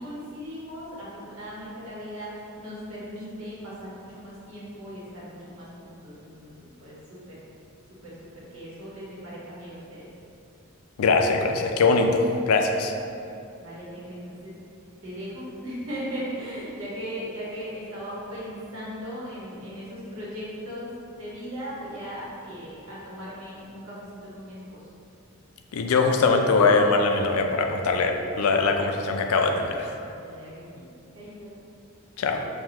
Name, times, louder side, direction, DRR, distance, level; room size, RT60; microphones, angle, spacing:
voice 1, 0.0-7.4 7.9-10.1 13.6-14.5 15.0-24.8 30.2-30.9 31.1-31.6, equal, 70° right, -8 dB, 1.3 m, -38 dB
voice 2, 11.0-12.9 25.7-30.0 32.2-32.5, left 3 dB, 85° left, 4 dB, 0.4 m, -22 dB
5.6 x 2.4 x 2.9 m, 2.7 s
head